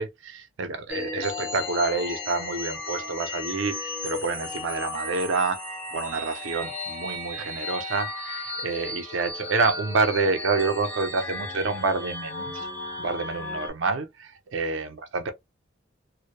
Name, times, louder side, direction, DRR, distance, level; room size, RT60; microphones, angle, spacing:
voice 1, 0.0-5.6 5.9-12.7 13.0-15.3, right 4 dB, 85° right, 0.5 m, -28 dB
sound 1, 0.9-13.7, left 2 dB, 10° left, 0.9 m, -35 dB
2.1 x 2.1 x 2.8 m
head